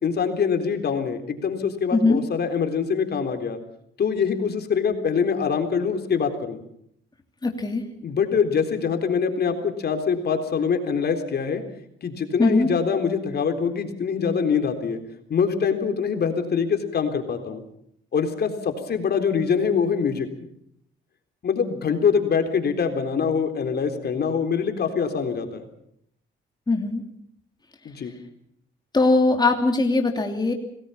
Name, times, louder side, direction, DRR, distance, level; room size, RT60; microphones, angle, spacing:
voice 1, 0.0-3.6 4.0-6.6 8.0-11.6 12.0-15.0 15.3-17.6 18.1-20.3 21.4-25.7 27.9-28.1, left 6 dB, 55° left, 6 dB, 3.8 m, -24 dB
voice 2, 7.4-7.9 12.4-12.7 26.7-27.0 28.9-30.5, left 3 dB, 20° left, 3 dB, 2.9 m, -20 dB
27.0 x 19.0 x 5.7 m, 0.69 s
cardioid pair, 90°, 20 cm